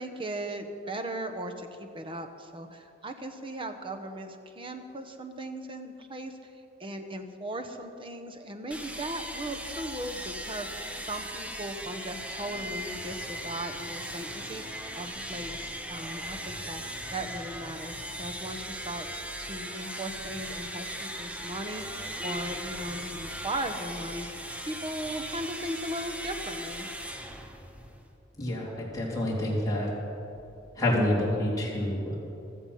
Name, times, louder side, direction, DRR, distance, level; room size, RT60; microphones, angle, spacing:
voice 1, 0.0-6.5 6.8-19.1 19.4-26.9, right 1 dB, 25° right, 5 dB, 1.1 m, -38 dB
sound 1, 8.7-28.2, equal, 5° right, 1.0 m, -38 dB
voice 2, 28.3-29.9 30.7-32.2, left 1 dB, 20° left, -6 dB, 3.6 m, -28 dB
16.0 x 13.5 x 5.7 m, 2.8 s
head